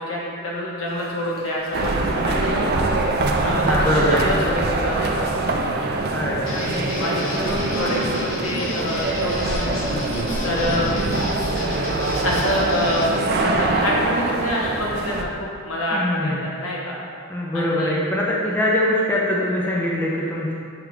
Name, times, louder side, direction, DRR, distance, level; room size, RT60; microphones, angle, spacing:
voice 1, 0.0-2.8 3.4-5.3 6.6-9.8 10.4-10.9 12.2-15.3 15.6-17.0 17.5-18.0, left 1 dB, 85° left, -4 dB, 1.3 m, -26 dB
sound 1, 0.9-12.7, equal, 45° left, 1.3 m, -38 dB
sound 2, 1.7-15.2, right 2 dB, 50° right, 0.5 m, -24 dB
voice 2, 3.5-4.4 6.1-6.8 15.9-16.4 17.3-20.5, left 1 dB, 10° left, -4 dB, 0.6 m, -23 dB
Guitar, 6.4-13.2, left 3 dB, 65° left, 0.7 m, -33 dB
6.8 x 4.9 x 3.2 m, 2.3 s
head